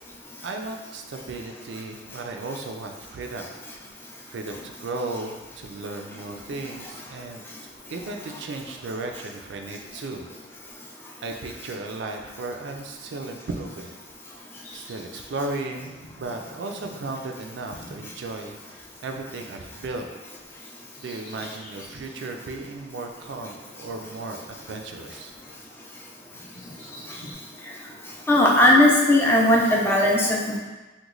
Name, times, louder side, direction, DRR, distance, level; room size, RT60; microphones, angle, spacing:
voice 1, 0.4-10.3 10.7-10.9 11.2-13.9 14.4-20.1 21.0-25.3, right 2 dB, 60° right, 3 dB, 0.3 m, -35 dB
Bird vocalization bird call bird song, 14.5-19.2 19.4-22.1 22.6-22.7 23.6-25.0 25.3-27.3, left 1 dB, 40° left, 0.8 m, -49 dB
voice 2, 28.3-30.6, left 1 dB, 10° left, -2 dB, 0.4 m, -18 dB
3.0 x 2.2 x 3.7 m, 1.2 s
head